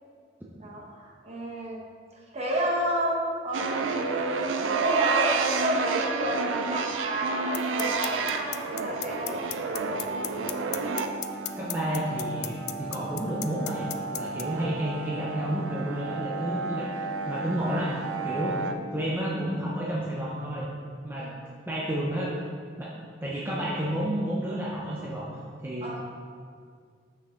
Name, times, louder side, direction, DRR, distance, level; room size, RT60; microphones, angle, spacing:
voice 1, 0.6-1.8 2.3-9.5 21.1-21.3 25.8-26.0, equal, 35° right, -2 dB, 1.0 m, -31 dB
sound 1, 3.5-18.7, right 4 dB, 85° right, 0.5 m, -31 dB
sound 2, 7.5-14.4, left 17 dB, 55° left, 0.3 m, -33 dB
sound 3, 9.7-19.7, left 2 dB, 25° left, 1.7 m, -42 dB
voice 2, 11.6-18.7 18.9-20.7 21.0-21.3 21.7-22.4 22.8-22.9 23.2-25.3 25.6-26.1, right 1 dB, 10° right, -6 dB, 0.6 m, -31 dB
6.1 x 5.6 x 3.7 m, 2.1 s
head